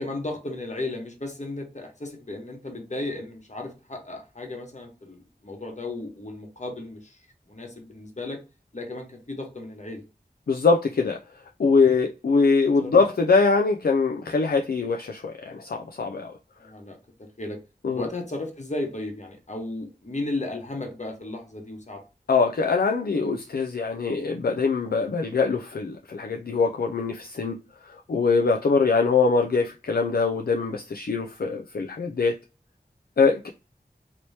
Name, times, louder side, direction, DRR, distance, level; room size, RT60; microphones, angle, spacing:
voice 1, 0.0-7.2 7.5-8.4 8.7-10.0 12.8-13.1 16.6-17.6 17.9-22.0, left 2 dB, 45° left, 1.1 m, -35 dB
voice 2, 10.5-11.2 11.6-16.3 17.8-18.1 22.3-27.6 27.9-32.4 33.2-33.5, left 4 dB, 65° left, 0.4 m, -23 dB
3.0 x 2.7 x 3.2 m
wide cardioid pair, 50°, 17 cm